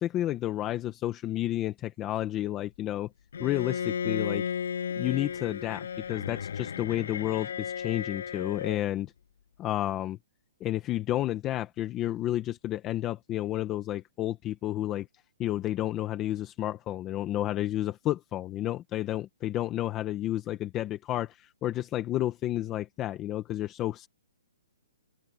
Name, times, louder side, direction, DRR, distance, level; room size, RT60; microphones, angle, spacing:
voice 1, 0.0-3.1 3.4-4.4 5.0-9.1 9.6-10.2 10.6-15.1 15.4-24.1, left 14 dB, 15° left, 1.0 m, -31 dB
Bowed string instrument, 3.3-8.9, left 7 dB, 65° left, 6.9 m, -34 dB
hypercardioid pair, 175°, 0 cm